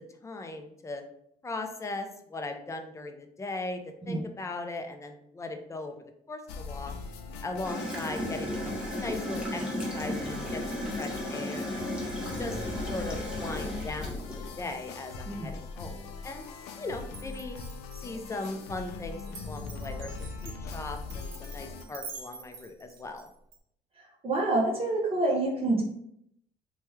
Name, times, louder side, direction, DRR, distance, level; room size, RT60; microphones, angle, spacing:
voice 1, 0.2-1.0 1.4-5.9 6.3-6.9 7.4-12.0 12.4-16.5 16.8-17.6 18.0-23.3, left 2 dB, 15° left, 5 dB, 0.4 m, -38 dB
sound 1, 6.5-21.8, left 4 dB, 90° left, 0.4 m, -41 dB
Gurgling / Toilet flush, 7.6-14.7, equal, 5° right, 0.9 m, -35 dB
Glass, 17.1-23.6, right 5 dB, 70° right, 0.7 m, -47 dB
voice 2, 24.2-25.8, right 2 dB, 35° right, -1 dB, 0.7 m, -27 dB
2.9 x 2.2 x 3.2 m, 0.73 s
cardioid pair, 110°, 17 cm